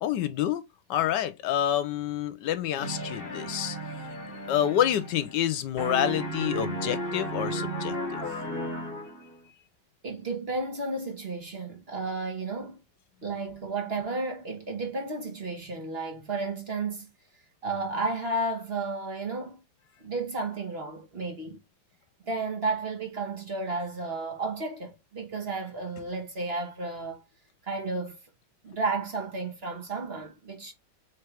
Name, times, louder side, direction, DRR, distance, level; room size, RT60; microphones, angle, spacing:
voice 1, 0.0-0.6 0.9-3.8 4.5-8.2, left 10 dB, 80° left, 1.3 m, -28 dB
sound 1, 2.8-5.5 5.8-9.4, equal, 35° left, 1.3 m, -34 dB
voice 2, 10.0-12.8 13.2-17.1 17.6-19.6 20.0-21.6 22.2-27.2 27.6-28.2 28.6-30.7, right 3 dB, 40° right, 1.2 m, -32 dB
4.5 x 3.6 x 3.2 m
omnidirectional pair, 1.9 m